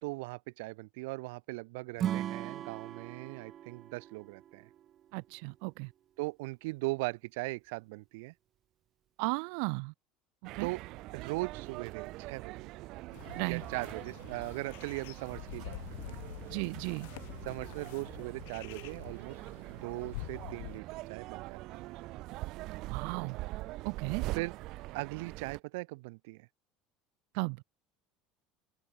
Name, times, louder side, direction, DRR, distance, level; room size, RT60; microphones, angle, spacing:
voice 1, 0.0-4.7 6.2-8.3 10.6-10.8 11.1-12.7 13.4-15.8 16.1-16.2 17.4-19.4 19.7-21.6 24.3-24.5 24.9-26.5, right 25 dB, 80° right, 3.0 m, -39 dB
Acoustic guitar / Strum, 2.0-5.3, right 11 dB, 30° right, 1.5 m, -38 dB
voice 2, 5.1-5.9 9.2-9.9 10.5-10.7 13.4-13.6 16.5-17.1 22.9-23.4 23.8-24.2 27.3-27.6, right 40 dB or more, 65° right, 1.7 m, -35 dB
sound 1, 10.4-25.6, right 19 dB, 45° right, 1.2 m, -43 dB
sound 2, 13.1-20.8, left 23 dB, 85° left, 2.8 m, -47 dB
open air
cardioid pair, 170°, 0 cm